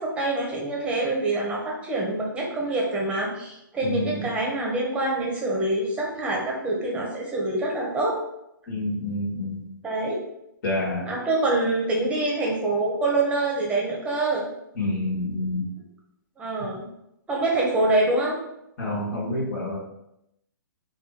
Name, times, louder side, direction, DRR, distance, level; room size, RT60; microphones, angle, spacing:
voice 1, 0.0-8.2 9.8-10.3 11.1-14.5 16.4-16.8 17.3-18.4, right 2 dB, 10° right, -2 dB, 1.1 m, -25 dB
voice 2, 3.8-4.3 8.7-9.7 10.6-11.1 14.7-15.7 18.8-19.8, left 1 dB, 45° left, -4 dB, 1.5 m, -28 dB
4.5 x 2.7 x 4.2 m, 0.82 s
figure-of-eight pair, 125°, 11 cm